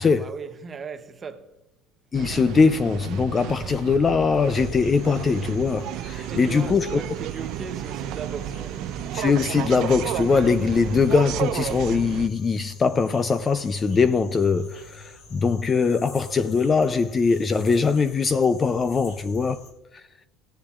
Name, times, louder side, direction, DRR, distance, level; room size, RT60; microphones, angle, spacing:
voice 1, 0.0-1.5 6.1-8.8, right 5 dB, 20° right, 0.7 m, -38 dB
voice 2, 2.1-7.0 9.1-19.6, left 5 dB, 20° left, 0.3 m, -21 dB
sound 1, 2.1-12.3, right 12 dB, 50° right, 0.4 m, -32 dB
sound 2, 4.5-19.7, left 4 dB, 60° left, 3.0 m, -47 dB
17.5 x 10.0 x 2.4 m
cardioid pair, 160°, 0 cm